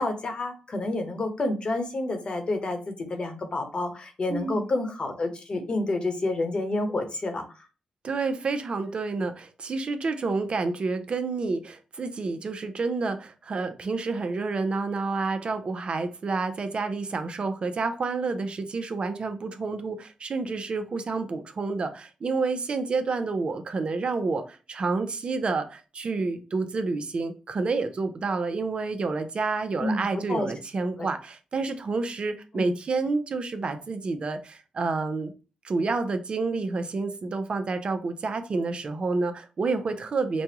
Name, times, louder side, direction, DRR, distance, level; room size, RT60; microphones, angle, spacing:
voice 1, 0.0-7.4 29.8-30.5 31.0-31.1 32.5-32.7, left 2 dB, 45° left, 5 dB, 1.1 m, -29 dB
voice 2, 4.3-4.7 8.0-35.3 35.6-40.4, right 3 dB, 50° right, 8 dB, 0.7 m, -29 dB
5.2 x 2.3 x 2.9 m, 0.33 s
cardioid pair, 70°, 2 cm